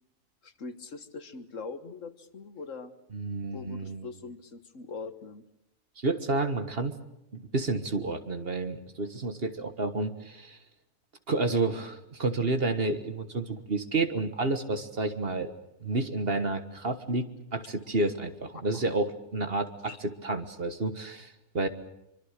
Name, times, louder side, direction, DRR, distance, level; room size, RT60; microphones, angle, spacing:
voice 1, 0.4-2.9 3.5-5.4 19.9-20.0, left 4 dB, 65° left, 11 dB, 1.8 m, -42 dB
voice 2, 3.1-4.0 6.0-7.0 7.3-10.6 11.3-15.5 15.8-21.7, right 3 dB, 45° right, 9 dB, 1.7 m, -30 dB
24.5 x 24.0 x 6.7 m, 0.87 s
omnidirectional pair, 1.4 m